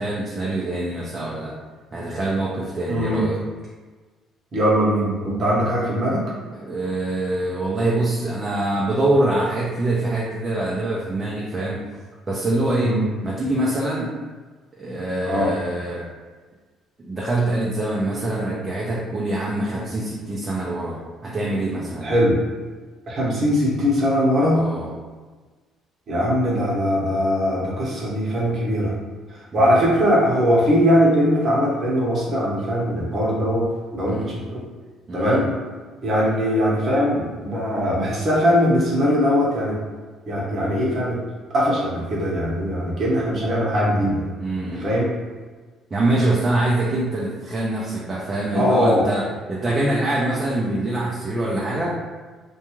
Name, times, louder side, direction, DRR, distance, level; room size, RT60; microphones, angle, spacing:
voice 1, 0.0-1.5 1.9-3.4 6.5-11.8 12.3-14.1 14.7-16.1 17.0-22.1 24.5-24.9 29.5-29.8 34.1-34.3 35.1-35.4 44.4-44.9 45.9-51.9, right 2 dB, 25° right, -5 dB, 0.5 m, -24 dB
voice 2, 2.9-3.3 4.5-6.2 12.8-13.0 15.2-15.6 22.0-22.4 23.1-24.6 26.1-28.9 29.5-33.6 33.9-34.6 35.1-35.5 36.0-39.8 40.3-41.2 41.5-44.2 44.6-45.1 48.5-49.1, equal, 45° right, -4 dB, 0.9 m, -20 dB
2.5 x 2.3 x 3.0 m, 1.4 s
cardioid pair, 105°, 0 cm